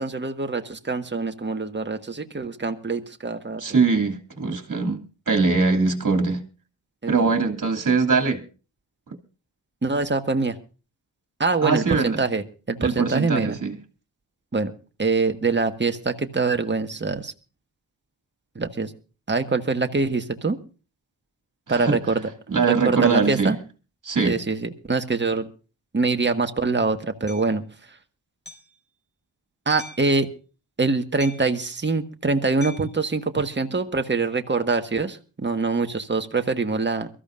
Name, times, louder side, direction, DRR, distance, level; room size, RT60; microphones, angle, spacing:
voice 1, 0.0-3.8 7.0-7.1 9.8-10.6 11.4-13.6 14.5-14.7 15.0-17.3 18.5-18.9 19.3-20.6 21.7-22.3 22.6-23.6 24.2-25.5 25.9-27.6 29.6-30.3 30.8-37.1, right 3 dB, 25° right, 1.6 m, -24 dB
voice 2, 3.6-6.4 7.1-8.4 11.6-12.2 12.8-13.8 21.7-22.0 22.5-23.5 24.0-24.4, right 4 dB, 45° right, 2.8 m, -22 dB
Hammer, 27.3-27.5 28.5-28.8 29.8-30.1 31.2-31.6 32.6-33.0, left 2 dB, 25° left, 5.2 m, -42 dB
23.0 x 14.5 x 2.6 m
cardioid pair, 45°, 45 cm